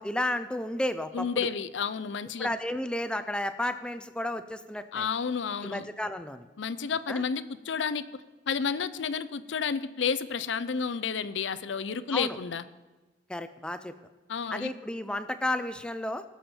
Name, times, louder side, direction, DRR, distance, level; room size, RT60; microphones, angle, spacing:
voice 1, 0.0-1.5 2.4-5.1 5.6-6.5 7.1-7.2 12.1-12.4 13.3-13.9 14.5-16.2, left 1 dB, 5° left, 10 dB, 0.4 m, -32 dB
voice 2, 1.1-2.5 4.9-5.9 6.6-8.0 8.5-12.6 14.3-14.7, left 6 dB, 80° left, 14 dB, 0.5 m, -31 dB
19.0 x 7.2 x 4.3 m, 1.2 s
head